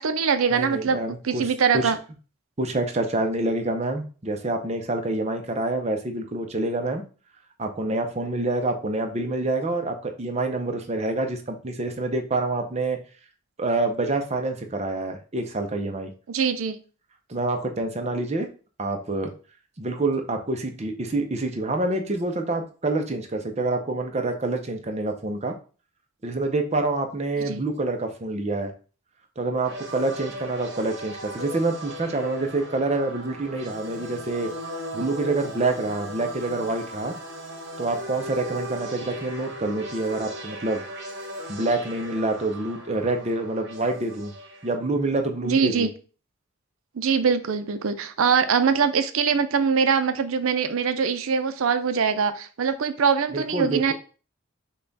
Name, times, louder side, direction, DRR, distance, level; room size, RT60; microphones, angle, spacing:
voice 1, 0.0-2.0 16.3-16.8 27.4-27.6 45.4-45.9 47.0-53.9, right 6 dB, 75° right, 10 dB, 0.5 m, -23 dB
voice 2, 0.5-1.9 2.6-7.0 7.6-13.0 13.6-16.1 17.3-18.5 18.8-19.3 19.8-25.6 26.2-28.7 29.4-34.5 34.9-37.1 37.8-40.8 41.5-44.3 44.6-45.9 53.3-53.9, right 2 dB, 30° right, 5 dB, 0.6 m, -27 dB
sound 1, 29.6-44.7, equal, 55° right, 1.2 m, -37 dB
5.4 x 2.3 x 3.9 m, 0.37 s
head